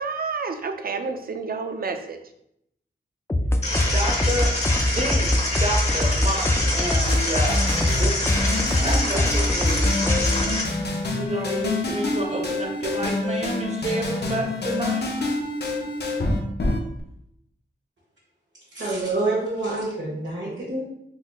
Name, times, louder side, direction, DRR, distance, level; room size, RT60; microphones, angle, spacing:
voice 1, 0.0-2.2, right 4 dB, 55° right, 7 dB, 0.4 m, -29 dB
sound 1, 3.3-10.7, left 1 dB, 15° left, 0.3 m, -23 dB
sound 2, 3.6-10.6, left 1 dB, 35° left, 1.0 m, -27 dB
voice 2, 3.9-4.6 4.9-7.7 8.0-8.2 8.8-10.0 11.1-15.1, right 1 dB, 35° right, 0 dB, 0.9 m, -29 dB
sound 3, 7.1-17.0, left 2 dB, 60° left, 0.6 m, -27 dB
voice 3, 18.7-20.8, right 2 dB, 75° right, -7 dB, 1.1 m, -27 dB
3.9 x 3.0 x 2.3 m, 0.76 s
cardioid pair, 55°, 19 cm